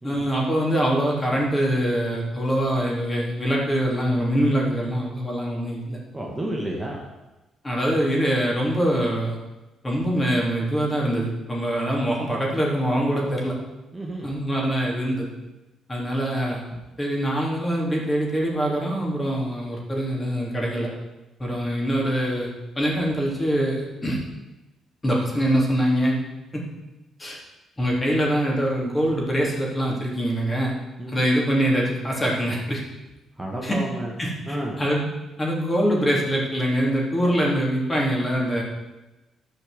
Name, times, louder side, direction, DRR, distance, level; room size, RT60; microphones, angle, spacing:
voice 1, 0.0-6.0 7.6-9.4 9.8-13.5 14.2-15.3 15.9-16.6 17.0-20.9 21.4-24.2 25.0-26.1 26.5-26.6 27.2-27.4 27.8-30.7 31.1-32.8 33.6-33.8 34.2-35.0 35.4-38.6, equal, 20° left, -2 dB, 3.5 m, -24 dB
voice 2, 6.1-7.0 13.9-14.3 31.0-31.3 33.4-34.1 34.5-34.8, right 1 dB, 15° right, -2 dB, 1.8 m, -31 dB
11.5 x 5.7 x 8.0 m, 1.1 s
cardioid pair, 90°, 0 cm